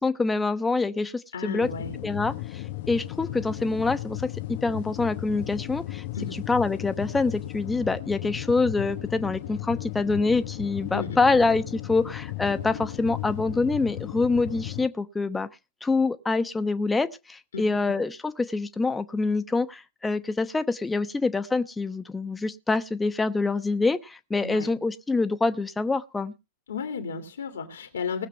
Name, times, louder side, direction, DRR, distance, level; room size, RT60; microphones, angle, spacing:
voice 1, 0.0-1.7 2.0-6.0 6.5-15.5 15.8-26.3, left 3 dB, 10° left, 1.0 m, -26 dB
voice 2, 1.3-1.9 6.1-6.4 10.9-11.2 17.5-17.6 24.4-24.7 26.7-28.3, left 5 dB, 75° left, 2.3 m, -33 dB
sound 1, 1.6-14.9, left 16 dB, 60° left, 0.8 m, -35 dB
19.5 x 7.4 x 4.4 m
hypercardioid pair, 95°, 0 cm